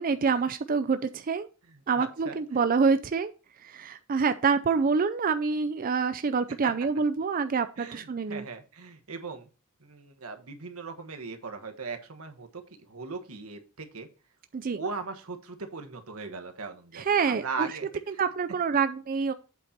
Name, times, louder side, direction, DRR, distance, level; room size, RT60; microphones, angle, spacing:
voice 1, 0.0-1.5 1.9-3.3 3.6-8.5 14.5-14.8 16.9-17.8 18.1-19.3, right 5 dB, 40° right, 10 dB, 0.4 m, -26 dB
voice 2, 1.7-2.4 6.6-6.7 7.8-9.5 9.8-12.6 12.9-14.1 14.7-17.9, right 4 dB, 90° right, 6 dB, 1.3 m, -39 dB
8.3 x 4.3 x 5.8 m, 0.33 s
head